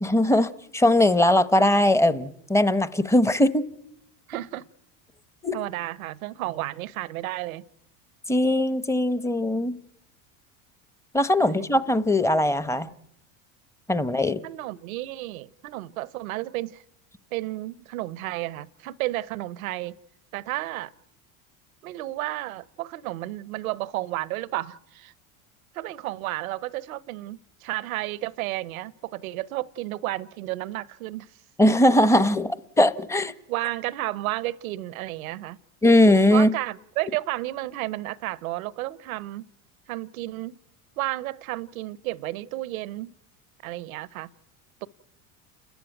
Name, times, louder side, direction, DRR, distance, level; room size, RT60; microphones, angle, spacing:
voice 1, 0.0-3.7 5.4-5.5 8.3-9.8 11.1-12.9 13.9-14.4 31.6-33.3 35.8-36.5, left 1 dB, 5° left, 0.9 m, -20 dB
voice 2, 4.3-4.7 5.5-7.6 11.4-11.7 13.9-14.1 14.4-16.8 17.3-20.0 20.3-20.9 21.8-25.1 25.7-31.3 33.5-35.6 36.3-39.4 39.9-40.6 41.0-43.1 43.6-44.3 44.8-44.9, right 17 dB, 85° right, 0.9 m, -32 dB
29.5 x 13.5 x 9.2 m
supercardioid pair, 105°, 41 cm